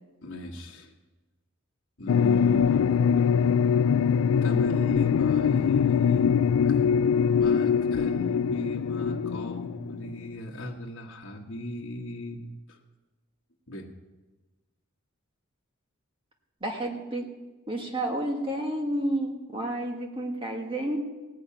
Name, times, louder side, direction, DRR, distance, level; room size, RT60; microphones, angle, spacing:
voice 1, 0.2-0.9 2.0-2.9 4.4-6.4 6.6-6.8 7.4-12.4 12.7-12.8 13.7-13.9, equal, 60° left, -1 dB, 1.4 m, -37 dB
sound 1, 2.1-10.3, left 7 dB, 80° left, 0.3 m, -23 dB
voice 2, 16.6-17.3 17.7-21.0, right 1 dB, 25° right, 1 dB, 1.8 m, -30 dB
18.5 x 6.5 x 8.6 m, 1.2 s
head